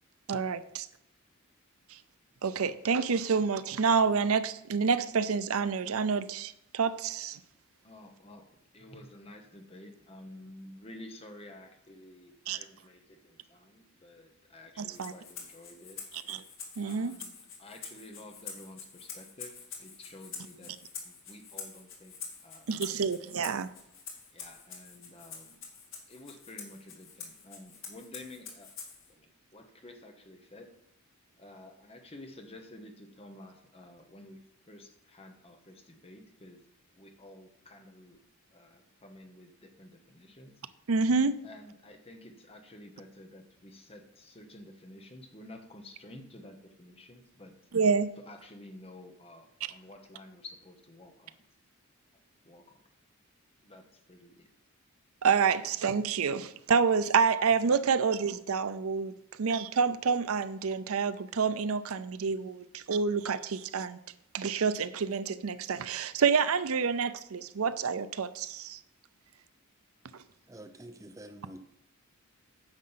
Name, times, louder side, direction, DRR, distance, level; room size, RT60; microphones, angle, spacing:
voice 1, 0.3-0.9 2.4-7.4 12.5-12.6 14.8-15.1 16.3-16.4 16.8-17.2 22.7-23.7 40.9-41.4 47.7-48.1 55.2-64.0 64.3-68.8, right 5 dB, 75° right, 0.5 m, -28 dB
voice 2, 7.8-8.4 8.7-16.0 16.8-20.8 21.0-22.2 22.4-23.1 24.3-25.6 26.1-28.7 29.1-30.8 31.4-36.6 37.0-38.2 38.5-40.6 41.4-47.6 48.3-51.4 52.4-52.8 53.6-54.5, left 1 dB, 25° left, 1.1 m, -51 dB
Rattle (instrument), 14.9-29.1, left 6 dB, 60° left, 2.3 m, -46 dB
voice 3, 70.5-71.6, right 1 dB, 15° right, 0.6 m, -47 dB
9.7 x 6.3 x 5.7 m
head